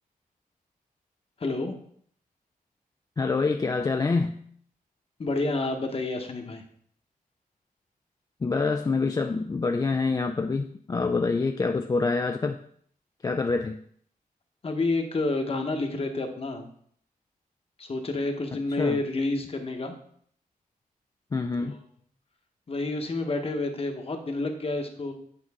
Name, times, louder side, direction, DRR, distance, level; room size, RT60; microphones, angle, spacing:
voice 1, 1.4-1.8 5.2-6.6 14.6-16.7 17.8-20.0 22.7-25.1, left 2 dB, 40° left, 5 dB, 1.1 m, -29 dB
voice 2, 3.2-4.4 8.4-12.6 13.2-13.8 18.8-19.0 21.3-21.8, left 4 dB, 25° left, 6 dB, 0.3 m, -26 dB
8.7 x 5.2 x 3.6 m, 0.62 s
wide cardioid pair, 135°, 15 cm